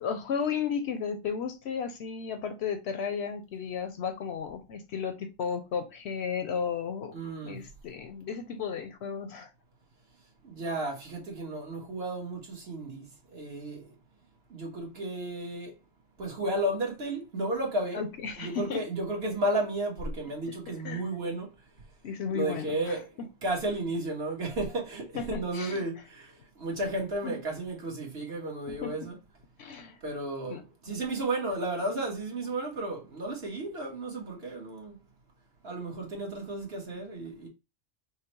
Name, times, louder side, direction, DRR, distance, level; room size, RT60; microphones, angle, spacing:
voice 1, 0.0-7.2 7.4-9.5 17.9-18.9 20.8-21.0 22.0-23.0 25.1-25.8 27.2-27.4 28.7-29.1 29.6-30.0 30.5-30.6, left 6 dB, 65° left, 0.8 m, -34 dB
voice 2, 7.1-7.6 10.4-13.1 13.3-13.9 14.5-15.7 16.2-18.0 18.4-21.5 22.3-23.1 23.4-29.2 30.0-35.0 35.6-37.5, right 1 dB, 55° right, 1.4 m, -33 dB
5.6 x 2.0 x 3.0 m
omnidirectional pair, 1.3 m